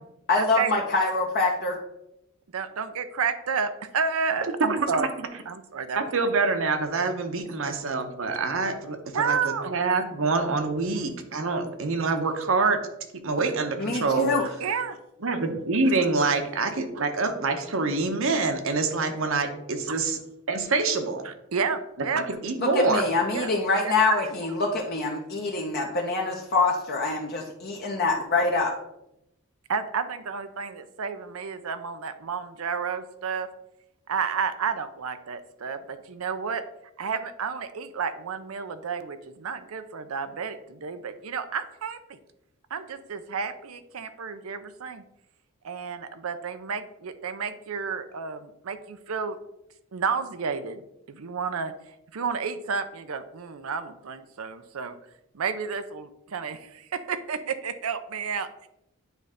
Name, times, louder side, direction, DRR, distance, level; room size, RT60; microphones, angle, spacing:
voice 1, 0.3-1.8 13.8-14.4 22.7-28.8, left 3 dB, 50° left, -1 dB, 0.9 m, -25 dB
voice 2, 2.5-5.1 5.5-6.0 7.6-7.8 9.1-9.8 12.0-12.1 14.4-15.0 21.2-22.3 23.3-23.5 23.8-24.3 29.7-33.5 34.1-36.6 37.0-42.2 42.7-45.0 45.6-49.4 49.9-50.8 51.1-51.7 52.1-54.9 55.3-58.7, right 6 dB, 85° right, 10 dB, 0.6 m, -31 dB
voice 3, 4.7-5.1 6.0-12.8 13.2-14.4 15.2-20.2 20.5-21.2 22.1-23.0, right 3 dB, 65° right, 7 dB, 0.9 m, -26 dB
9.2 x 3.2 x 5.0 m, 0.85 s
head